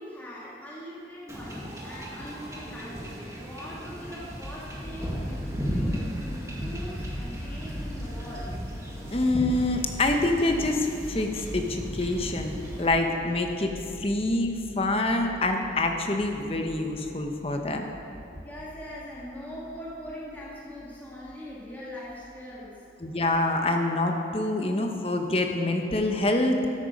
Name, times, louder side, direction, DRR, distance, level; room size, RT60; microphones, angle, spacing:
voice 1, 0.0-3.1 3.4-8.5 18.4-22.9, equal, 10° left, -8 dB, 1.8 m, -41 dB
Wind / Ocean / Boat Water vehicle, 1.3-12.9, equal, 15° right, 1.5 m, -36 dB
sound 1, 4.4-22.5, equal, 75° left, 1.4 m, -42 dB
voice 2, 9.1-13.7 14.0-17.9 23.0-26.6, left 2 dB, 30° left, 4 dB, 0.9 m, -26 dB
13.0 x 8.8 x 5.3 m, 2.7 s
head